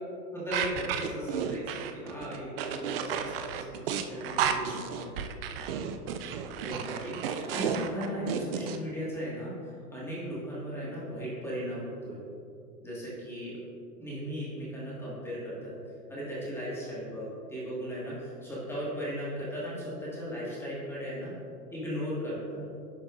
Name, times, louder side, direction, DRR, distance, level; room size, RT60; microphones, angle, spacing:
voice 1, 0.3-5.2 6.6-12.2 12.8-13.6 14.0-15.7 16.1-21.3 21.7-22.6, equal, 5° left, -8 dB, 1.7 m, -37 dB
sound 1, 0.5-8.8, right 8 dB, 40° right, 0.4 m, -32 dB
11.0 x 6.3 x 2.5 m, 2.5 s
hypercardioid pair, 125°, 50 cm